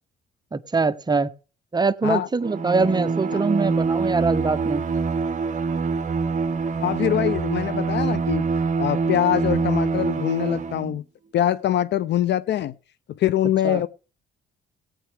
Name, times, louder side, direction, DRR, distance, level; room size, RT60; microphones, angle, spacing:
voice 1, 0.5-1.3 1.7-4.8 13.6-13.8, right 4 dB, 20° right, 0.7 m, -23 dB
Bowed string instrument, 2.4-11.0, right 4 dB, 40° right, 1.0 m, -25 dB
voice 2, 6.8-8.5 8.8-11.0 11.3-12.7 13.2-13.9, left 11 dB, 60° left, 0.5 m, -23 dB
17.5 x 9.1 x 3.5 m
cardioid pair, 90°, 20 cm